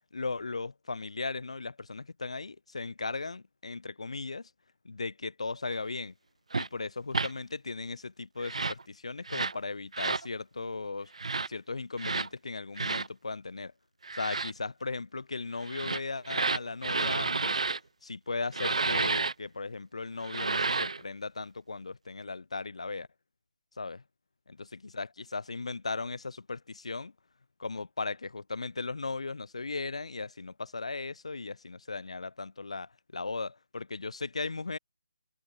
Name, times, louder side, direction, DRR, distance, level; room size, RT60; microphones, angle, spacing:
voice 1, 0.1-4.5 4.8-6.1 6.6-11.1 11.5-13.7 14.1-17.6 18.0-23.1 23.8-24.0 24.6-27.1 27.6-34.8, left 3 dB, 70° left, 5.2 m, -37 dB
sound 1, 6.5-6.7 7.1-7.3 8.4-8.8 9.3-9.6 9.9-10.3 11.1-11.5 12.0-12.3 12.8-13.1 14.0-14.5 15.6-17.8 18.5-19.3 20.2-21.0, right 4 dB, 75° right, 0.7 m, -30 dB
hypercardioid pair, 175°, 3 cm